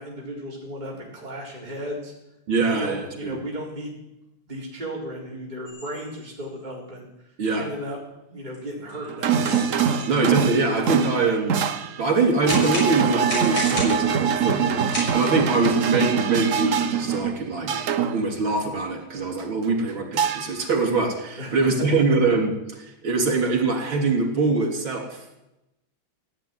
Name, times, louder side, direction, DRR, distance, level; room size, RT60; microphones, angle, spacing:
voice 1, 0.0-2.1 2.6-4.0 4.5-7.1 7.6-8.0 8.3-9.6 21.4-21.6, equal, 20° right, -3 dB, 4.0 m, -35 dB
voice 2, 2.5-3.4 7.4-7.6 10.1-14.8 15.1-17.8 18.1-25.4, right 3 dB, 75° right, 2 dB, 4.0 m, -23 dB
sound 1, 5.7-6.4 7.8-7.9 8.5-8.6 8.9-10.2 12.5-14.2 14.9-15.1, left 1 dB, 75° left, 7.1 m, -32 dB
sound 2, 8.9-18.3 20.2-20.7, right 7 dB, 55° right, 0.9 m, -23 dB
16.5 x 8.8 x 9.7 m, 0.90 s
omnidirectional pair, 2.2 m